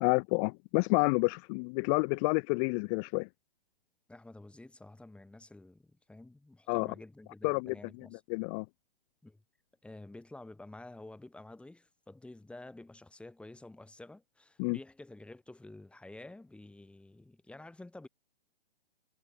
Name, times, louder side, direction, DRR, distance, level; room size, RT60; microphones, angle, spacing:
voice 1, 0.0-3.3 6.7-6.9 7.4-7.7 8.3-8.6 14.6-14.8, left 37 dB, 25° left, 0.8 m, -29 dB
voice 2, 4.1-8.2 9.2-9.4 9.8-18.1, left 2 dB, 5° left, 8.0 m, -50 dB
figure-of-eight pair, 130°, 32 cm